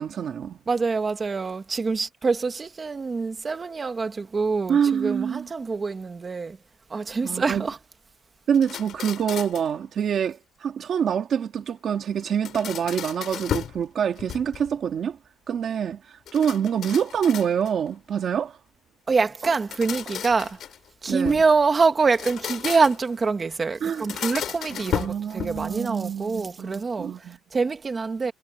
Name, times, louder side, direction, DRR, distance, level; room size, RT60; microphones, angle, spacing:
voice 1, 0.0-0.6 4.7-5.5 7.2-7.7 8.5-15.2 15.5-18.6 21.1-21.4 23.8-24.0 24.8-27.4, right 8 dB, 45° right, 1.7 m, -26 dB
voice 2, 0.7-6.6 6.9-7.8 19.1-20.6 21.0-28.3, right 4 dB, 25° right, 1.6 m, -25 dB
sound 1, 8.5-9.8 12.2-13.8 14.2-14.8 16.3-17.9 19.5-21.5 22.0-23.1 23.9-25.8, left 10 dB, 50° left, 4.7 m, -34 dB
cardioid pair, 160°, 0 cm